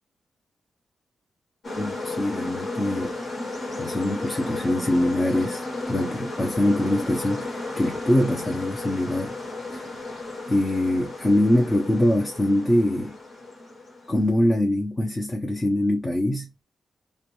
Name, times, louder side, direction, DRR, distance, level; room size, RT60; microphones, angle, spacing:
sound 1, 1.6-14.3, left 2 dB, 50° left, 1.0 m, -34 dB
voice 1, 1.8-3.1 3.8-9.3 9.7-9.8 10.5-13.1 14.1-16.5, left 1 dB, 15° left, 0.6 m, -23 dB
2.4 x 2.1 x 2.9 m
cardioid pair, 100°, 0 cm